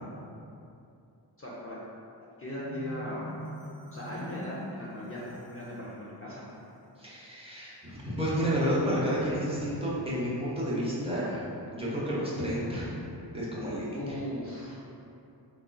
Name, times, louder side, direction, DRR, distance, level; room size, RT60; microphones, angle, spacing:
voice 1, 1.4-1.8 2.4-3.3 3.9-6.5 14.0-14.8, left 1 dB, 30° left, -7 dB, 0.5 m, -38 dB
Marimba xylophone, 2.6-5.9, equal, 80° left, 0.7 m, -43 dB
voice 2, 7.0-11.4 11.7-13.0 13.3-14.0, equal, 15° right, -8 dB, 0.8 m, -30 dB
sound 1, 13.0-14.1, equal, 60° left, 1.1 m, -51 dB
3.6 x 2.3 x 2.2 m, 2.6 s
cardioid pair, 65°, 43 cm